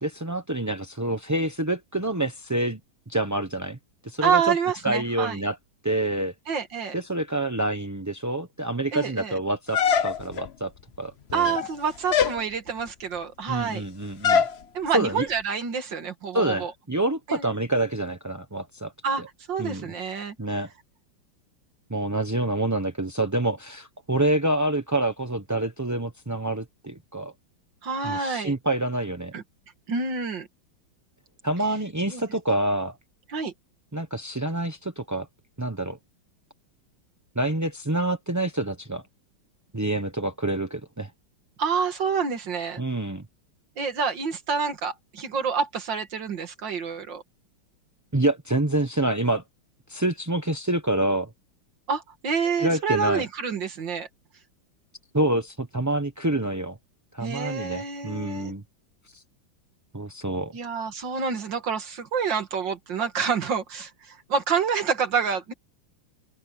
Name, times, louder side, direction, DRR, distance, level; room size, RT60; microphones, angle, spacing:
voice 1, 0.0-2.8 3.1-3.8 4.0-4.5 4.8-5.6 5.8-6.3 6.9-10.7 11.0-11.6 13.5-14.4 14.9-15.3 16.3-18.9 19.2-19.3 19.6-19.9 20.4-20.7 21.9-27.3 28.0-29.3 31.4-33.0 33.9-35.3 35.6-36.0 37.3-39.0 39.7-41.1 42.8-43.2 48.1-49.4 49.9-51.3 52.6-53.3 55.1-56.8 57.1-58.6 59.1-59.2 59.9-60.5, right 1 dB, 15° right, 0.6 m, -27 dB
voice 2, 4.2-5.4 6.5-6.9 8.9-9.3 11.3-13.8 14.7-16.7 17.3-17.4 19.0-20.3 27.8-28.5 29.3-29.4 29.9-30.5 32.1-32.2 33.3-33.5 41.6-42.8 43.8-47.2 51.9-54.1 57.2-58.5 60.5-65.5, right 6 dB, 65° right, 2.5 m, -28 dB
sound 1, 9.7-10.5 11.3-11.7 12.1-12.4 14.2-14.6, left 7 dB, 60° left, 0.6 m, -22 dB
omnidirectional pair, 2.2 m